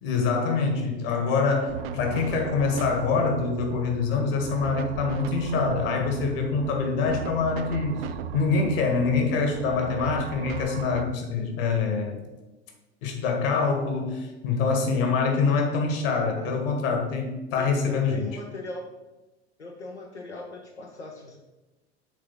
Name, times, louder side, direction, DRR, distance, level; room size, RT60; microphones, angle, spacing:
voice 1, 0.0-8.1 8.3-12.3 13.0-18.2, left 4 dB, 55° left, 3 dB, 1.8 m, -25 dB
sound 1, 1.7-11.0, right 8 dB, 65° right, 0.6 m, -36 dB
voice 2, 17.5-18.9 19.6-21.4, left 2 dB, 85° left, 0 dB, 0.9 m, -39 dB
7.5 x 3.9 x 5.4 m, 1.1 s
figure-of-eight pair, 75°, 33 cm